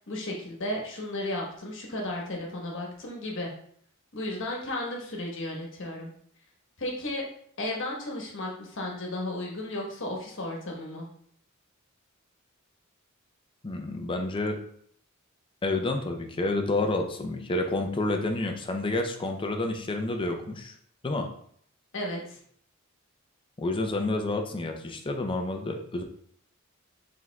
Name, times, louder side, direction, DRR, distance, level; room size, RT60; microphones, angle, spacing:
voice 1, 0.1-3.5 4.1-6.1 6.8-7.2 7.6-11.1 21.9-22.4, left 1 dB, 65° left, -1 dB, 1.1 m, -34 dB
voice 2, 13.6-14.6 15.6-20.7 21.0-21.3 23.6-26.0, left 2 dB, 25° left, 4 dB, 0.5 m, -29 dB
4.9 x 3.6 x 2.3 m, 0.62 s
head